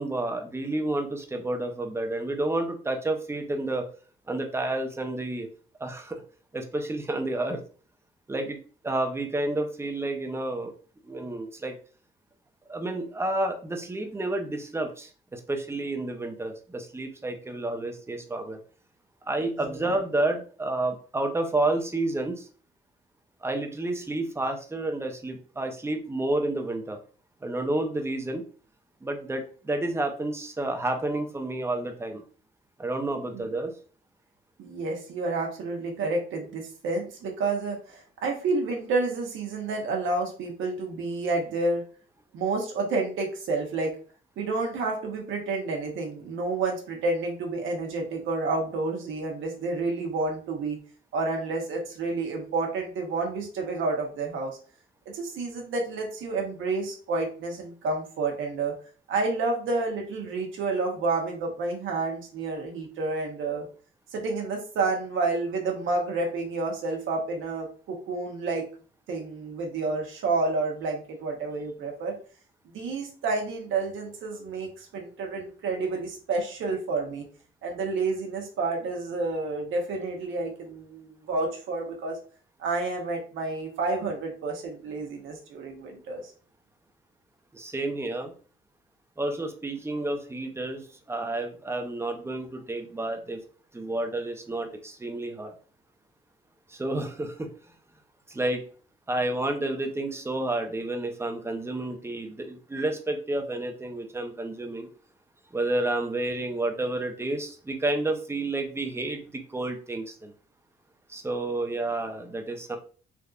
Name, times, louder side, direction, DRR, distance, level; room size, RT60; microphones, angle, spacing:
voice 1, 0.0-3.9 4.3-5.5 5.8-6.2 6.5-7.6 8.3-8.6 8.8-10.7 11.0-11.7 12.7-18.6 19.3-22.5 23.4-27.0 27.4-28.4 29.0-32.2 32.8-33.7 87.5-88.3 89.2-93.4 93.7-95.5 96.7-97.5 98.3-98.6 99.1-104.9 105.5-110.3 111.1-112.8, right 2 dB, 15° right, 5 dB, 0.6 m, -30 dB
voice 2, 19.5-20.0 33.3-33.5 34.6-41.8 42.3-43.9 44.4-50.8 51.1-54.6 55.1-58.7 59.1-63.6 64.1-68.7 69.1-72.1 72.7-77.2 77.6-82.2 82.6-86.2, right 3 dB, 80° right, 1 dB, 0.9 m, -29 dB
3.4 x 2.6 x 2.4 m, 0.40 s
cardioid pair, 90°, 20 cm